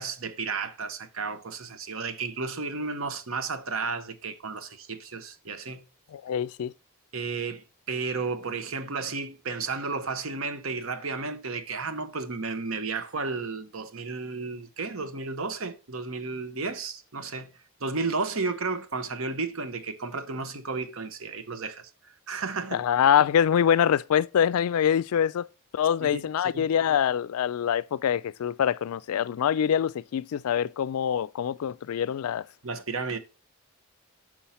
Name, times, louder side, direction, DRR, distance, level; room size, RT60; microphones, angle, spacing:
voice 1, 0.0-5.8 7.1-17.5 17.8-21.9 22.3-22.8 26.0-26.2 26.5-26.7 32.6-33.2, right 4 dB, 65° right, 1.0 m, -33 dB
voice 2, 6.1-6.7 22.7-25.5 25.7-32.5, left 8 dB, 80° left, 0.3 m, -24 dB
6.2 x 5.7 x 4.2 m
head